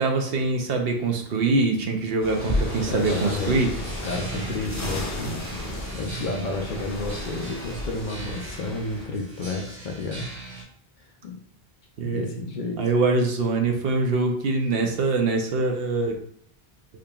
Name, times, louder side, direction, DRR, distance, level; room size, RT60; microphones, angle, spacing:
voice 1, 0.0-3.7 12.0-12.3 12.8-16.2, right 3 dB, 70° right, 4 dB, 0.8 m, -23 dB
sound 1, 2.2-9.0, left 1 dB, 20° left, 0.8 m, -33 dB
sound 2, 2.4-10.6, right 2 dB, 85° right, 1.7 m, -40 dB
voice 2, 2.9-3.7 4.0-5.6 5.9-10.3 11.2-11.4 12.0-12.9, left 2 dB, 55° left, 2 dB, 0.6 m, -31 dB
5.0 x 2.8 x 2.3 m, 0.65 s
omnidirectional pair, 1.1 m